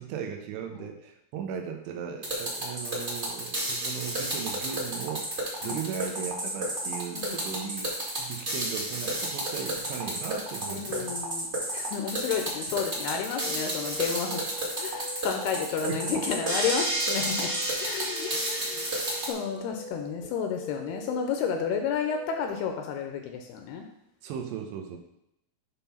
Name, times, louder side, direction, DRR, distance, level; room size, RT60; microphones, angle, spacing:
voice 1, 0.0-5.3 5.6-7.9 8.2-11.2 15.9-16.0 18.0-18.2 24.2-25.0, right 8 dB, 85° right, 4 dB, 3.0 m, -37 dB
sound 1, 2.2-19.3, right 1 dB, 30° right, 1.2 m, -31 dB
voice 2, 7.1-7.7 10.7-11.5 11.7-14.4 14.8-18.9 19.3-23.9, left 7 dB, 80° left, 4 dB, 2.4 m, -31 dB
sound 2, 13.1-22.6, equal, 55° left, 1.1 m, -43 dB
8.2 x 3.7 x 5.7 m, 0.79 s
omnidirectional pair, 5.0 m